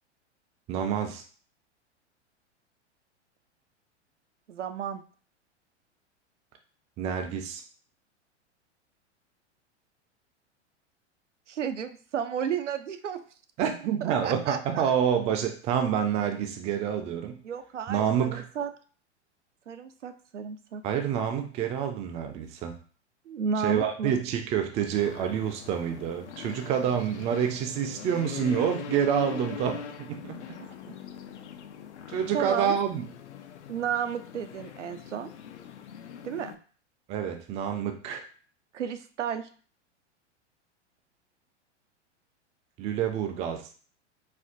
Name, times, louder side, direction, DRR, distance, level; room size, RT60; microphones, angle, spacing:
voice 1, 0.7-1.2 7.0-7.6 13.6-17.4 17.9-18.5 20.8-22.7 23.6-30.4 32.1-33.1 37.1-38.3 42.8-43.7, right 8 dB, 20° right, 5 dB, 0.3 m, -28 dB
voice 2, 4.5-5.0 11.5-13.2 14.0-14.9 17.4-18.7 19.7-20.8 23.3-24.1 30.6-30.7 32.3-32.7 33.7-35.3 36.2-36.6 38.7-39.5, right 7 dB, 90° right, 9 dB, 0.5 m, -32 dB
sound 1, 25.0-36.6, left 8 dB, 70° left, 0.5 m, -42 dB
4.2 x 2.2 x 2.5 m, 0.41 s
hypercardioid pair, 100°, 35 cm